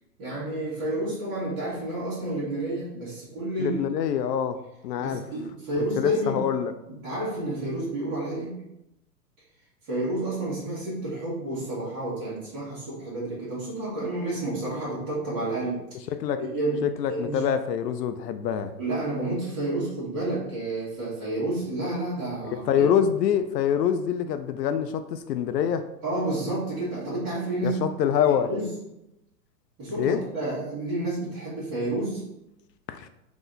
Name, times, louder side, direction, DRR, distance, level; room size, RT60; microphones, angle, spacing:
voice 1, 0.2-3.8 5.0-6.4 6.9-8.5 9.8-15.8 16.4-16.8 17.1-17.4 18.8-22.9 26.0-27.8 28.5-28.7 29.8-32.2, right 2 dB, 25° right, -13 dB, 1.6 m, -30 dB
voice 2, 3.6-4.6 4.8-5.2 5.8-6.7 16.1-16.4 16.8-18.7 22.5-25.8 27.6-28.5 30.0-30.2 32.9-33.1, left 8 dB, 85° left, 9 dB, 0.5 m, -25 dB
4.0 x 2.9 x 3.9 m, 0.87 s
hypercardioid pair, 160°, 48 cm